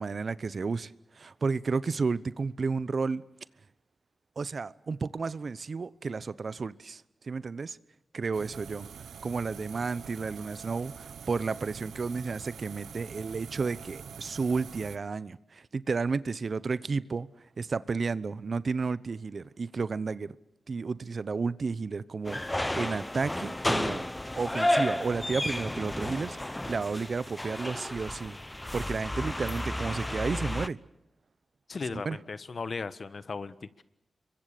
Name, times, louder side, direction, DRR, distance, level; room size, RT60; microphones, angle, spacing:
voice 1, 0.0-3.2 4.4-7.8 8.1-8.9 9.2-20.3 20.7-24.1 24.3-28.4 28.7-30.8 31.9-32.2, right 4 dB, 60° right, 0.9 m, -32 dB
sound 1, 8.3-15.0, right 7 dB, 90° right, 0.8 m, -45 dB
sound 2, 22.3-30.7, left 1 dB, 15° left, 0.8 m, -32 dB
voice 2, 31.7-33.8, left 4 dB, 60° left, 1.3 m, -37 dB
26.5 x 23.0 x 6.8 m
cardioid pair, 55°, 0 cm